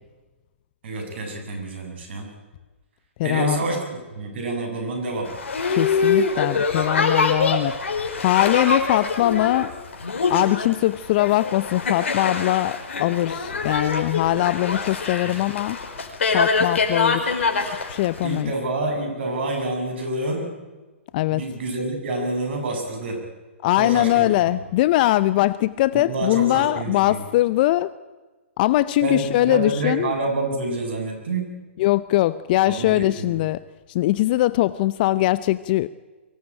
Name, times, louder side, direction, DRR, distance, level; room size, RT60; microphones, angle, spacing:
voice 1, 0.8-2.3 3.2-3.8 4.1-5.3 15.2-15.4 18.2-20.5 21.3-23.2 23.8-24.3 25.9-27.2 29.0-31.5 32.7-33.3, right 2 dB, 60° right, 4 dB, 7.7 m, -27 dB
voice 2, 3.2-3.6 5.7-9.7 10.3-15.8 16.3-17.5 17.9-18.5 21.1-21.4 23.6-27.9 28.6-30.1 31.8-33.6 33.9-35.9, left 16 dB, 45° left, 16 dB, 0.7 m, -21 dB
Boat Water vehicle, 5.3-18.4, left 4 dB, 70° left, 4.5 m, -24 dB
23.5 x 17.5 x 8.9 m, 1.2 s
hypercardioid pair, 125°, 7 cm